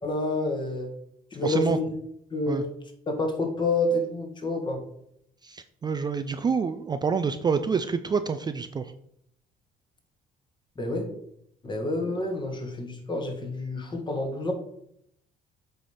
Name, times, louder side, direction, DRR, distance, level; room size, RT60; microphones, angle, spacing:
voice 1, 0.0-0.9 1.3-1.9 2.3-2.7 3.1-4.8 10.8-11.1 11.6-14.5, left 2 dB, 25° left, 3 dB, 1.8 m, -28 dB
voice 2, 1.4-1.8 2.5-2.6 5.4-8.9, right 5 dB, 25° right, 10 dB, 0.4 m, -27 dB
7.8 x 3.4 x 5.6 m, 0.72 s
cardioid pair, 110°, 17 cm